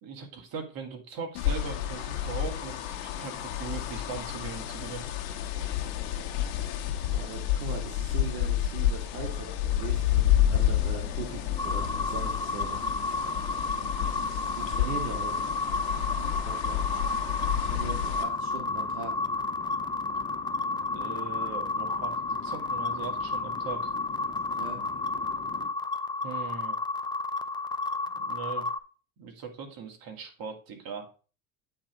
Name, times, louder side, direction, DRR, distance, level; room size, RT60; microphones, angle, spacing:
voice 1, 0.0-5.0 13.7-14.0 20.9-23.9 26.2-26.8 28.1-28.7 29.2-31.1, right 5 dB, 55° right, 3 dB, 2.2 m, -40 dB
sound 1, 1.3-18.2, left 11 dB, 75° left, 1.3 m, -30 dB
voice 2, 6.9-12.8 13.9-15.4 16.1-16.8 17.6-19.1 24.6-24.8, right 6 dB, 80° right, 2 dB, 1.6 m, -40 dB
Chatter / Fixed-wing aircraft airplane, 10.2-25.7, left 5 dB, 25° left, 1.3 m, -45 dB
sound 2, 11.6-28.8, left 3 dB, 10° left, 0.5 m, -32 dB
8.7 x 3.5 x 5.1 m, 0.36 s
hypercardioid pair, 75°, 43 cm